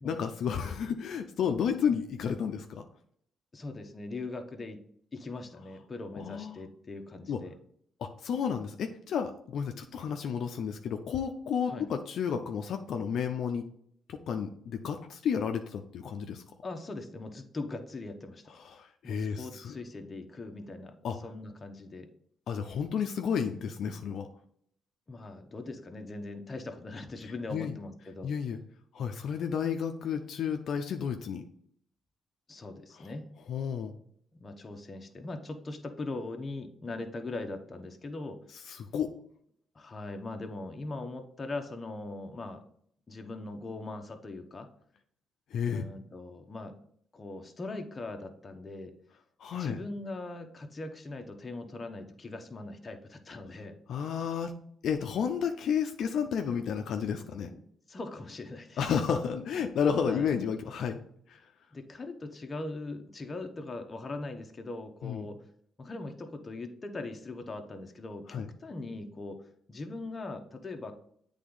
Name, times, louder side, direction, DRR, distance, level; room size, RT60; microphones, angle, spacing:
voice 1, 0.0-2.8 6.1-6.6 7.3-7.4 8.0-13.7 14.1-16.4 18.6-19.7 21.0-21.2 22.5-24.3 27.5-27.8 28.2-28.6 28.9-31.4 33.5-34.0 38.7-39.1 45.5-45.8 49.4-49.8 53.9-57.5 58.8-61.0 61.3-61.4 65.0-65.3 68.3-68.5, left 7 dB, 70° left, 5 dB, 0.5 m, -32 dB
voice 2, 3.5-4.8 5.1-7.6 11.7-11.9 16.6-18.4 19.0-21.0 21.2-22.1 25.1-28.3 32.5-33.3 34.4-38.4 39.7-42.6 43.1-44.7 45.7-46.7 47.1-48.9 49.5-53.8 57.5-57.6 57.9-58.8 60.0-60.3 61.7-65.4 65.8-69.4 69.7-70.9, left 2 dB, 30° left, 5 dB, 0.9 m, -40 dB
8.3 x 3.5 x 3.8 m, 0.66 s
cardioid pair, 90°, 0 cm